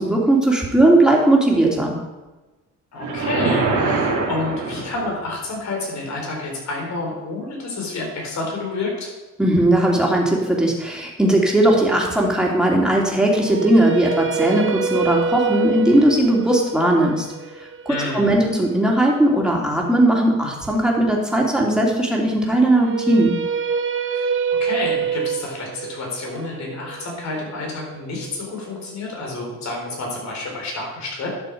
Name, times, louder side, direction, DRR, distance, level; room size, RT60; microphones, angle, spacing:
voice 1, 0.0-1.9 9.4-17.3 17.8-23.3, right 1 dB, 5° right, -2 dB, 2.9 m, -18 dB
voice 2, 2.9-9.1 17.9-18.3 24.0-24.3 24.6-31.3, left 2 dB, 65° left, -1 dB, 4.1 m, -29 dB
sound 1, 3.0-5.3, right 3 dB, 75° right, 2.3 m, -23 dB
sound 2, 13.3-19.4 22.6-28.7, right 6 dB, 45° right, 0.8 m, -26 dB
11.5 x 6.8 x 5.2 m, 1.1 s
cardioid pair, 90°, 30 cm